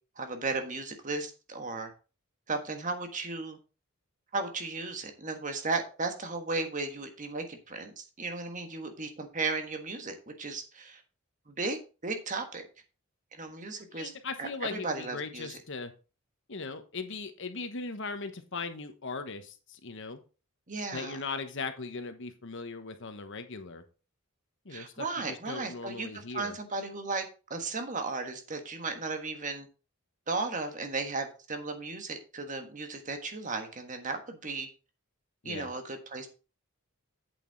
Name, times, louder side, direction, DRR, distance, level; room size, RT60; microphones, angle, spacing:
voice 1, 0.2-1.9 2.5-3.6 4.3-11.0 11.5-12.7 13.4-14.1 14.4-15.6 20.7-21.2 24.7-27.2 27.5-29.7 30.3-34.7 35.4-36.3, right 3 dB, 35° right, 1.4 m, -35 dB
voice 2, 13.9-15.9 16.5-20.2 20.9-23.8 24.6-26.6 35.4-35.7, left 4 dB, 60° left, 1.1 m, -39 dB
8.4 x 7.2 x 4.0 m
head